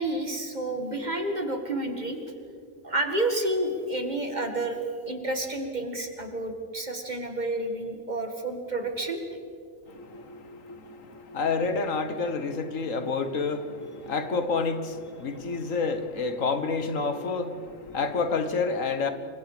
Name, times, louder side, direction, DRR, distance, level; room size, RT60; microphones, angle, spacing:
voice 1, 0.0-2.2 2.8-9.2, right 2 dB, 35° right, 5 dB, 2.2 m, -30 dB
voice 2, 9.9-19.1, left 4 dB, 75° left, 9 dB, 1.7 m, -29 dB
28.5 x 24.0 x 5.1 m, 2.3 s
omnidirectional pair, 1.4 m